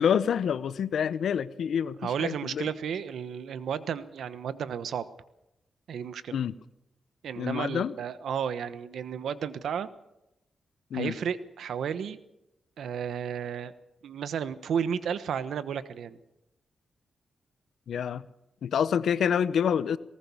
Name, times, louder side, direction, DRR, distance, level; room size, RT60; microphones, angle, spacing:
voice 1, 0.0-2.7 6.3-6.5 7.4-7.9 10.9-11.1 17.9-18.2 18.6-20.0, left 8 dB, 80° left, 16 dB, 0.8 m, -27 dB
voice 2, 2.0-5.1 5.9-6.3 7.2-9.9 10.9-12.2 12.8-13.7 14.0-16.2, right 7 dB, 90° right, 13 dB, 1.1 m, -32 dB
19.5 x 19.0 x 7.1 m, 0.90 s
wide cardioid pair, 115°, 0 cm